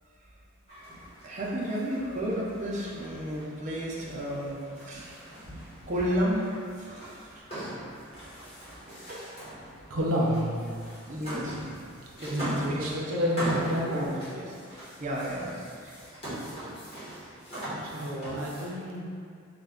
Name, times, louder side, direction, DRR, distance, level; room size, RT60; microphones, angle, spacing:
sound 1, 0.7-18.8, equal, 30° left, 1.1 m, -40 dB
voice 1, 1.2-5.2 5.9-6.5 6.8-7.5 8.9-9.3 11.0-11.6 12.2-13.0 13.4-13.6 13.9-15.5 15.8-16.0, equal, 35° right, -4 dB, 0.5 m, -33 dB
voice 2, 9.9-10.5 12.1-14.2 17.8-19.0, equal, 80° right, -3 dB, 0.6 m, -29 dB
3.1 x 2.2 x 3.6 m, 2.2 s
head